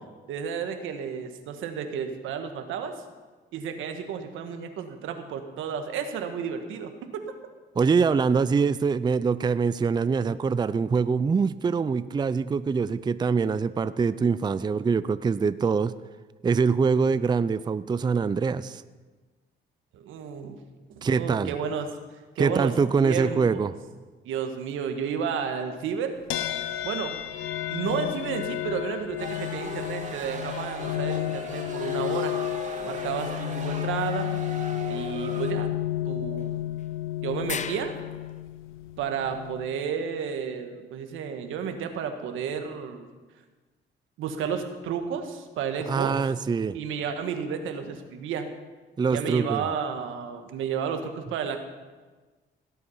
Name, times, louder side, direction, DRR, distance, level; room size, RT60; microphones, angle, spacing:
voice 1, 0.3-3.0 3.5-7.2 19.9-20.6 20.9-21.9 22.3-23.7 24.2-26.2 26.8-27.1 27.7-32.4 32.8-34.3 34.9-35.7 36.0-36.6 37.2-37.9 39.0-43.1 44.2-46.1 46.7-48.5 49.1-51.6, right 7 dB, 90° right, 6 dB, 1.4 m, -32 dB
voice 2, 7.8-15.9 16.4-18.8 21.0-21.5 22.4-23.7 45.9-46.8 49.0-49.7, right 5 dB, 20° right, 14 dB, 0.4 m, -24 dB
sound 1, 26.3-39.8, left 13 dB, 90° left, 0.7 m, -32 dB
sound 2, 29.2-35.5, right 3 dB, 40° right, 2.4 m, -39 dB
sound 3, 30.5-31.8 36.4-36.5 36.8-36.9 37.5-38.4, left 6 dB, 35° left, 0.6 m, -39 dB
17.0 x 8.5 x 5.6 m, 1.3 s
cardioid pair, 90°, 20 cm